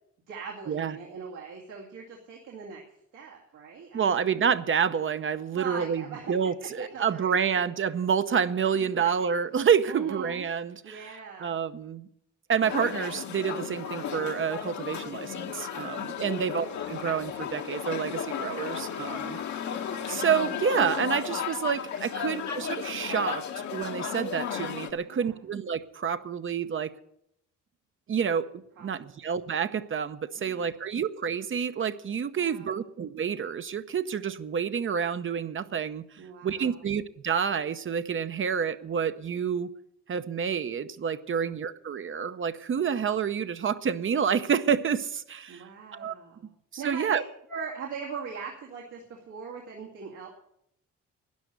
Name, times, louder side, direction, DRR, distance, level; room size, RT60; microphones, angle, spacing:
voice 1, 0.3-2.8 3.1-4.3 5.5-6.3 6.9-7.6 8.9-9.1 9.8-10.4 10.8-11.6 15.7-16.4 22.1-22.6 24.9-25.4 28.8-29.1 30.4-30.8 32.3-32.8 36.2-36.8 41.3-41.5 45.5-46.5 46.8-47.2 47.5-50.3, right 6 dB, 90° right, 2.4 m, -40 dB
voice 2, 3.9-12.1 12.5-19.4 20.1-26.9 28.1-36.0 36.4-39.7 40.1-45.6 45.9-46.1 46.7-47.2, right 7 dB, 40° right, 0.7 m, -28 dB
sound 1, 12.6-24.9, left 8 dB, 70° left, 1.6 m, -34 dB
12.5 x 10.0 x 8.1 m
cardioid pair, 90°, 30 cm